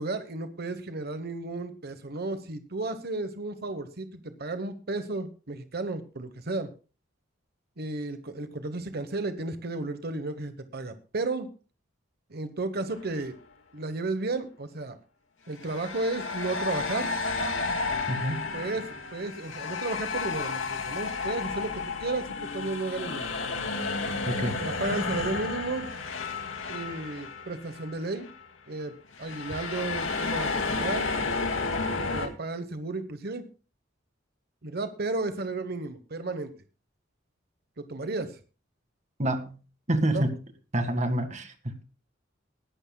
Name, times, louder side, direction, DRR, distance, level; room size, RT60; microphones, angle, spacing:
voice 1, 0.0-6.7 7.8-11.5 12.3-13.3 13.7-15.0 15.5-17.1 18.5-23.4 24.6-25.9 26.7-28.3 28.7-28.9 29.2-31.1 32.0-33.4 34.6-36.5 37.8-38.4 40.1-40.2, right 3 dB, 55° right, 9 dB, 1.1 m, -33 dB
sound 1, 12.9-13.1 15.6-28.0 28.2-28.4 29.1-32.3, left 4 dB, 80° left, 2.3 m, -32 dB
voice 2, 18.1-18.5 24.3-24.6 39.2-39.6 39.9-40.4 40.7-41.8, right 1 dB, 35° right, 7 dB, 1.9 m, -27 dB
20.5 x 12.0 x 2.3 m, 0.34 s
head